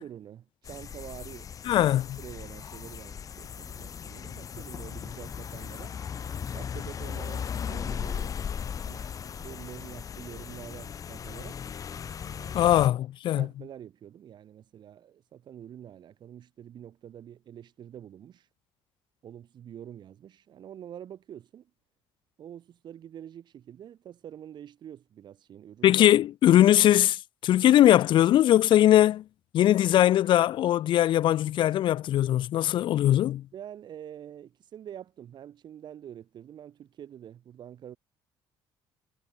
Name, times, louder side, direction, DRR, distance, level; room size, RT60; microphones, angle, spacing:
voice 1, 0.0-1.5 1.8-1.9 2.2-6.0 6.5-8.4 8.9-11.6 12.2-12.7 13.2-18.5 19.2-21.7 22.4-26.0 33.5-38.0, right 10 dB, 55° right, 2.5 m, -46 dB
sound 1, 0.6-12.9, left 7 dB, 40° left, 0.8 m, -37 dB
voice 2, 1.7-2.2 12.5-13.4 25.8-29.2 29.5-33.4, left 12 dB, 65° left, 0.9 m, -21 dB
cardioid pair, 105°, 9 cm